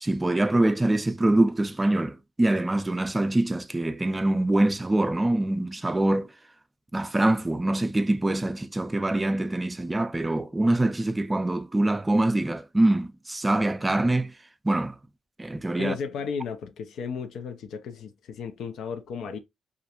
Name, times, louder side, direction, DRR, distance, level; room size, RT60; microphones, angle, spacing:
voice 1, 0.0-6.3 6.9-14.3 14.6-15.0 15.4-16.0, right 1 dB, 20° right, 0.3 m, -24 dB
voice 2, 15.8-19.4, left 6 dB, 75° left, 0.4 m, -34 dB
2.4 x 2.1 x 2.8 m
supercardioid pair, 60°, 0 cm